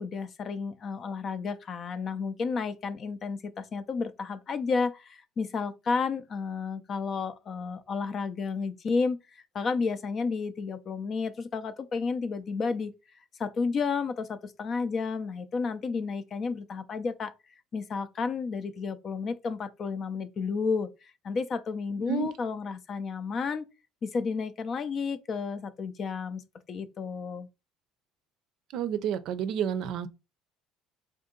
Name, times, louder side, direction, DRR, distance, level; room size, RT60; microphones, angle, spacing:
voice 1, 0.0-9.2 9.5-12.9 13.4-17.3 17.7-20.9 21.2-23.7 24.0-26.4 26.7-27.5, left 5 dB, 40° left, 0.5 m, -31 dB
voice 2, 28.7-30.1, right 8 dB, 65° right, 0.5 m, -30 dB
3.7 x 2.7 x 3.7 m
supercardioid pair, 105°, 0 cm